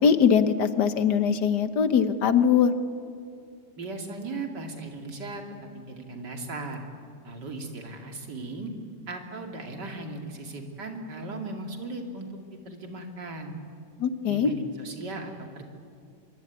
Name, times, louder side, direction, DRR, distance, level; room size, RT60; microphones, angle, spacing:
voice 1, 0.0-2.7 14.0-14.5, left 7 dB, 70° left, 11 dB, 1.7 m, -21 dB
voice 2, 3.8-5.4 5.7-6.8 7.2-8.7 9.1-12.3 12.6-13.5 14.3-15.6, right 2 dB, 70° right, 3 dB, 3.2 m, -37 dB
24.5 x 22.5 x 9.5 m, 2.3 s
omnidirectional pair, 1.9 m